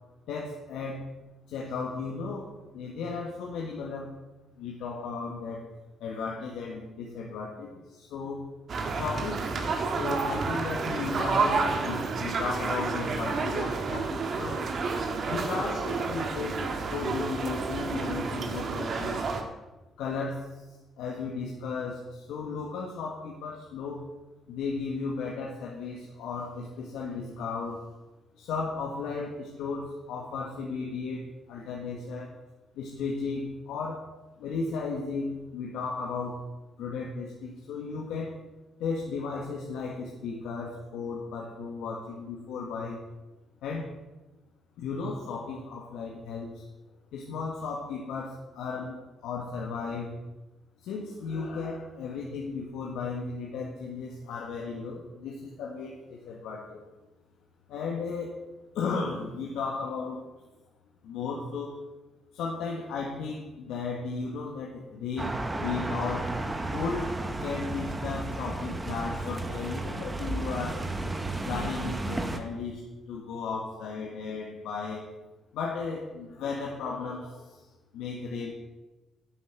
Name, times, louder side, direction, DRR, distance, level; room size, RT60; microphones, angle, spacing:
voice 1, 0.3-1.0 1.5-2.5 2.7-4.1 4.6-5.6 6.0-8.4 8.9-14.6 15.3-19.2 20.0-20.6 21.0-24.1 24.5-27.8 28.4-32.3 32.7-34.0 34.4-36.4 36.8-38.3 38.8-43.0 43.6-43.9 44.8-46.6 47.1-49.0 49.2-50.1 50.8-56.8 57.7-58.4 58.7-60.5 61.0-61.8 62.3-66.3 66.7-67.1 67.4-70.9 71.4-75.1 75.5-77.6 77.9-78.5, left 4 dB, 90° left, -2 dB, 1.7 m, -35 dB
sound 1, 8.7-19.4, right 4 dB, 55° right, 1.8 m, -30 dB
sound 2, 65.2-72.4, right 2 dB, 20° right, 1.3 m, -33 dB
11.0 x 8.1 x 6.8 m, 1.1 s
cardioid pair, 90°, 0 cm